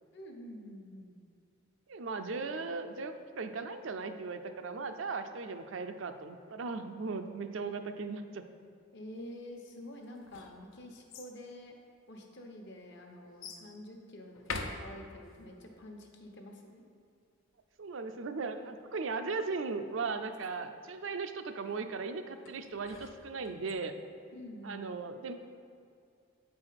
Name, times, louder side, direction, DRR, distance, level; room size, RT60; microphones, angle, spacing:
voice 1, 0.1-1.1 5.3-5.4 6.8-6.9 8.9-11.8 12.1-16.8 20.6-20.7 24.3-24.9, left 1 dB, 60° left, 2 dB, 1.0 m, -48 dB
voice 2, 1.9-8.5 17.8-23.9 24.6-25.3, right 4 dB, 70° right, 7 dB, 0.5 m, -37 dB
sound 1, 10.0-11.3 12.2-12.3 13.4-13.7 14.3-15.4 22.5-23.7, left 3 dB, 85° left, 0.7 m, -44 dB
8.3 x 4.8 x 5.7 m, 2.3 s
head